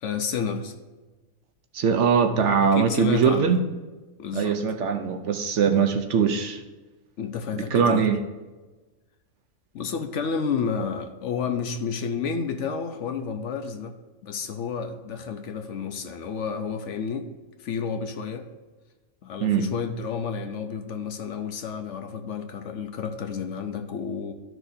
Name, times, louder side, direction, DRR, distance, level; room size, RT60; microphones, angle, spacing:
voice 1, 0.0-0.7 2.6-3.6 4.2-4.6 7.2-8.1 9.7-14.0 14.2-17.3 17.6-18.5 19.2-24.3, left 6 dB, 65° left, 7 dB, 0.9 m, -30 dB
voice 2, 1.7-3.6 4.3-6.6 7.5-8.2 19.4-19.7, right 6 dB, 65° right, 7 dB, 0.8 m, -22 dB
12.5 x 6.2 x 2.6 m, 1.2 s
omnidirectional pair, 1.5 m